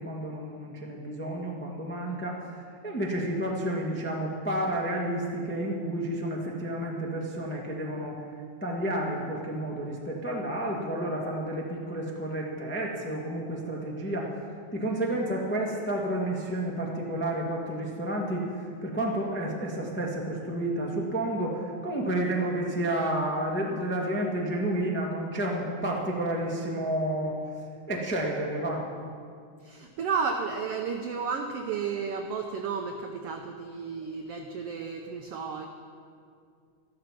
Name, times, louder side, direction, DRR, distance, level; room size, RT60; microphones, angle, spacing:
voice 1, 0.0-2.4 2.8-8.2 8.6-14.3 14.7-27.4 27.9-28.8, right 1 dB, 15° left, -2 dB, 0.3 m, -30 dB
voice 2, 29.6-35.7, right 5 dB, 90° right, 4 dB, 1.3 m, -32 dB
13.5 x 13.0 x 6.0 m, 2.2 s
omnidirectional pair, 3.8 m